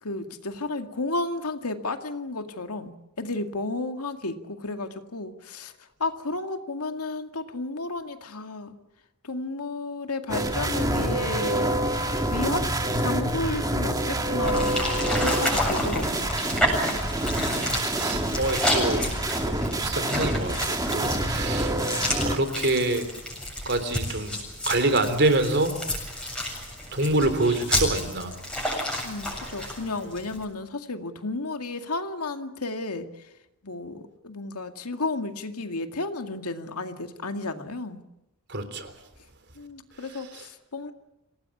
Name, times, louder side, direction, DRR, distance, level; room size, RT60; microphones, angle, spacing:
voice 1, 0.0-2.9 3.2-5.7 6.0-8.8 9.2-12.7 13.0-16.3 29.0-33.1 33.6-38.0 39.6-40.9, left 2 dB, 90° left, 7 dB, 2.1 m, -32 dB
sound 1, 10.3-22.4, right 1 dB, 15° right, 2.0 m, -27 dB
sound 2, 14.4-30.4, left 1 dB, 5° left, 7.6 m, -30 dB
voice 2, 17.2-21.8 22.2-23.1 23.7-24.4 24.7-25.7 26.9-28.4 38.5-38.9 40.3-40.4, right 2 dB, 50° right, 10 dB, 3.5 m, -26 dB
27.0 x 18.5 x 8.5 m, 0.93 s
head